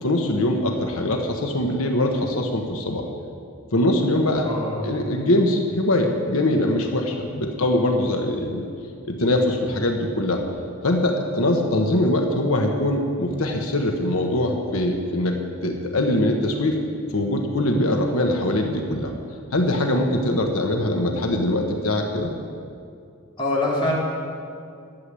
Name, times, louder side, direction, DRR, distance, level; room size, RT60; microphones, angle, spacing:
voice 1, 0.0-3.0 3.7-4.5 4.8-8.6 9.1-10.4 10.8-16.8 17.1-19.1 19.5-22.3, left 1 dB, 85° left, 2 dB, 1.2 m, -22 dB
voice 2, 4.4-4.9 23.4-23.9, left 2 dB, 25° left, -5 dB, 3.2 m, -24 dB
12.0 x 7.8 x 9.8 m, 2.4 s
head